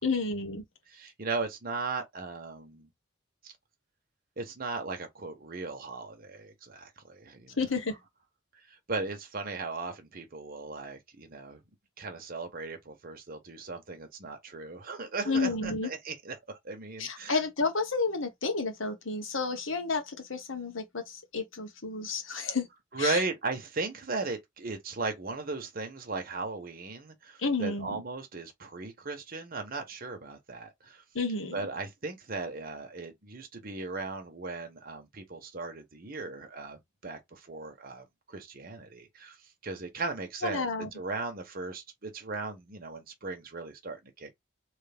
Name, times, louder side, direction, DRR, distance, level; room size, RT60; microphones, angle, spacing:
voice 1, 0.0-0.6 7.6-7.9 15.3-15.9 17.0-22.7 23.0-23.2 27.4-28.0 31.1-31.6 40.5-40.9, left 4 dB, 85° left, 1.4 m, -31 dB
voice 2, 0.9-2.9 3.4-3.5 4.4-7.6 8.9-11.6 12.0-17.4 22.9-31.0 31.5-39.4 39.6-40.7 40.9-44.3, right 3 dB, 50° right, 1.1 m, -37 dB
3.4 x 3.2 x 3.5 m
head